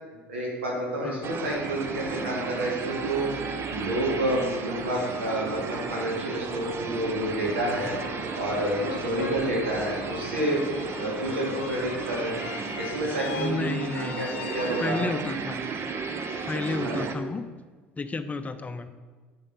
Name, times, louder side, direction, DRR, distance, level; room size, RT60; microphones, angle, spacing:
voice 1, 0.3-3.3 3.7-8.0 8.4-10.6 11.0-12.4 12.8-15.1 16.8-17.0, right 1 dB, 85° right, -2 dB, 2.1 m, -29 dB
sound 1, 1.2-17.1, right 5 dB, 40° right, 0.8 m, -34 dB
sound 2, 7.3-15.6, left 9 dB, 80° left, 0.5 m, -40 dB
voice 2, 13.4-14.3 14.8-15.6 16.5-17.4 18.0-18.9, left 3 dB, 25° left, 10 dB, 0.6 m, -31 dB
8.6 x 7.1 x 4.1 m, 1.4 s
hypercardioid pair, 65°, 6 cm